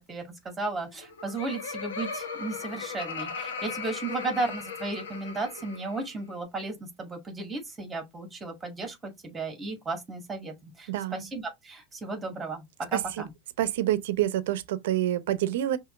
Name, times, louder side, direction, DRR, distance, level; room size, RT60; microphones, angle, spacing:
voice 1, 0.1-13.3, right 3 dB, 15° right, 2.1 m, -34 dB
Laughter, 0.9-6.1, left 5 dB, 90° left, 1.0 m, -37 dB
voice 2, 10.9-11.3 12.9-13.2 13.6-15.8, right 13 dB, 75° right, 0.7 m, -27 dB
5.7 x 2.8 x 2.6 m
supercardioid pair, 120°, 0 cm